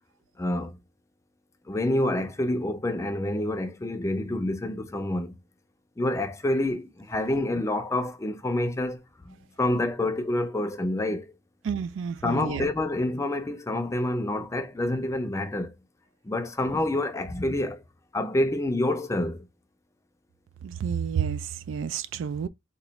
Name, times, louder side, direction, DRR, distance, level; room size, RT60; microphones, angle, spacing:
voice 1, 0.4-0.8 1.7-5.4 6.0-11.3 12.2-15.7 16.2-17.8 18.1-19.4, left 1 dB, 15° left, 0.4 m, -28 dB
voice 2, 11.6-12.7 20.6-22.5, right 7 dB, 75° right, 0.3 m, -30 dB
3.0 x 2.3 x 3.9 m
head